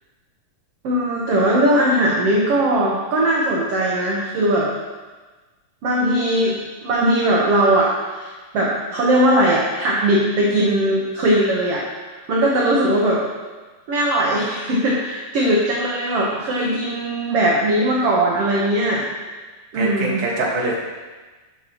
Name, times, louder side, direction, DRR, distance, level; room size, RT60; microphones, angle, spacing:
voice 1, 0.8-4.7 5.8-11.8 12.1-13.2 13.9-19.0 19.7-20.3, right 1 dB, 55° right, -4 dB, 1.8 m, -19 dB
voice 2, 19.7-20.8, right 2 dB, 80° right, -2 dB, 3.6 m, -23 dB
13.0 x 9.5 x 3.1 m, 1.3 s
omnidirectional pair, 4.0 m